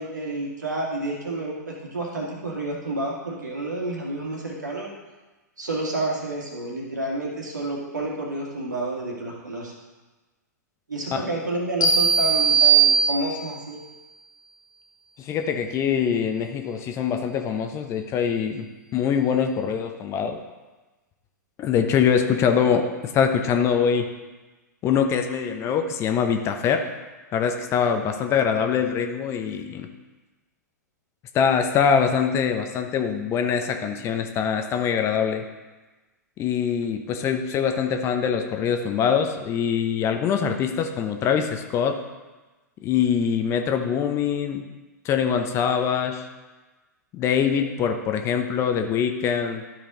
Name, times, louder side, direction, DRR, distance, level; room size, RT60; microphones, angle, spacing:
voice 1, 0.0-4.9 5.6-9.7 10.9-13.8, right 2 dB, 80° right, -2 dB, 2.1 m, -30 dB
sound 1, 11.8-13.6, right 6 dB, 75° left, 1.4 m, -19 dB
voice 2, 15.2-18.7 18.9-20.4 21.6-24.1 24.8-26.8 27.3-29.9 31.3-35.4 36.4-42.0 42.8-44.6 45.0-46.3 47.1-49.6, left 7 dB, 30° left, 6 dB, 0.8 m, -23 dB
12.5 x 5.0 x 3.8 m, 1.2 s
figure-of-eight pair, 105°, 10 cm